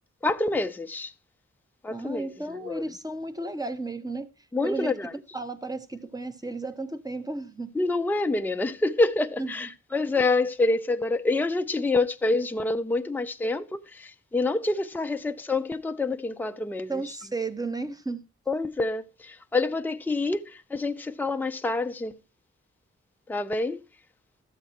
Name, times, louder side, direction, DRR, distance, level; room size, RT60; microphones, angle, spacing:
voice 1, 0.2-1.1 1.8-2.8 4.5-5.1 7.7-17.0 18.5-22.2 23.3-23.8, left 2 dB, 5° left, 0.5 m, -27 dB
voice 2, 1.9-4.3 4.6-4.9 5.3-7.7 9.4-9.7 16.9-18.2, right 2 dB, 15° right, 0.9 m, -33 dB
13.0 x 7.9 x 2.8 m
wide cardioid pair, 115°, 29 cm